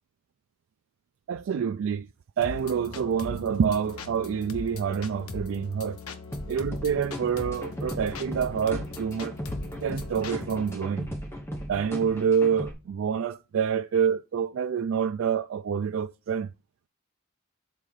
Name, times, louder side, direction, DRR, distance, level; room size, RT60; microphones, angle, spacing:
voice 1, 1.3-2.1 2.4-6.0 6.5-9.4 9.8-11.1 11.7-16.5, right 7 dB, 65° right, 0.3 m, -27 dB
sound 1, 2.4-10.8, left 3 dB, 90° left, 0.9 m, -40 dB
sound 2, 6.3-12.7, equal, 10° left, 1.1 m, -37 dB
6.5 x 3.8 x 5.4 m
head